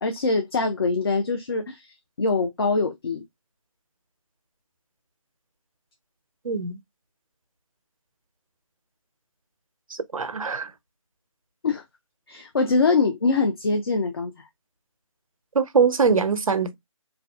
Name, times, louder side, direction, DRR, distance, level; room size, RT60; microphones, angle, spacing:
voice 1, 0.0-3.2 11.6-11.8 12.3-14.5, left 4 dB, 45° left, 0.4 m, -24 dB
voice 2, 6.4-6.8 9.9-10.7 15.5-16.7, right 5 dB, 85° right, 0.5 m, -22 dB
2.5 x 2.2 x 2.2 m
figure-of-eight pair, 155°, 17 cm